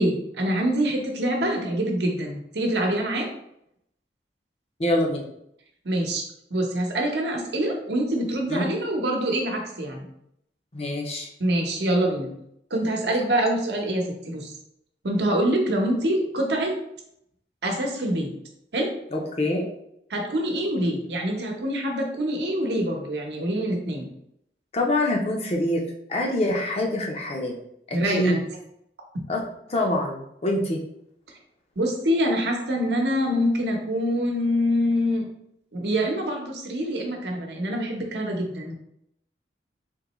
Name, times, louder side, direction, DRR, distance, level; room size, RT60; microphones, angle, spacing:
voice 1, 0.0-3.3 5.8-6.2 6.5-10.1 11.4-12.3 12.7-14.5 15.0-16.7 17.6-18.3 18.7-18.9 20.1-24.1 27.9-28.4 31.8-35.3 35.7-38.7, equal, 75° right, 1 dB, 0.9 m, -25 dB
voice 2, 4.8-5.2 8.5-8.7 10.7-11.3 19.1-19.7 24.7-25.8 26.1-27.5 27.9-28.3 29.3-29.4 29.7-30.8, left 1 dB, 35° left, 1 dB, 0.6 m, -25 dB
3.7 x 3.1 x 3.0 m, 0.75 s
head